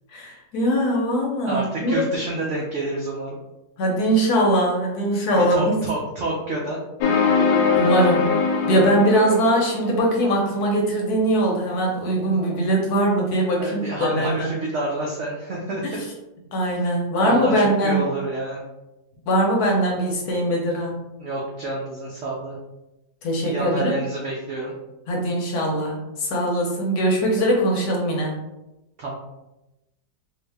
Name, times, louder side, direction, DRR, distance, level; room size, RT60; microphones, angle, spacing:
voice 1, 0.1-2.0 3.8-5.9 7.7-8.4 8.7-14.5 15.8-16.0 16.5-18.1 19.3-21.0 23.2-24.0 25.1-28.4, right 1 dB, 65° left, -1 dB, 1.1 m, -21 dB
voice 2, 1.5-3.3 5.3-6.8 13.6-15.8 17.2-18.6 21.2-22.6 23.4-24.7 29.0-29.1, right 2 dB, 85° right, -2 dB, 0.6 m, -28 dB
sound 1, 7.0-10.0, left 5 dB, 85° left, 1.3 m, -21 dB
2.8 x 2.7 x 3.3 m, 0.95 s
omnidirectional pair, 1.9 m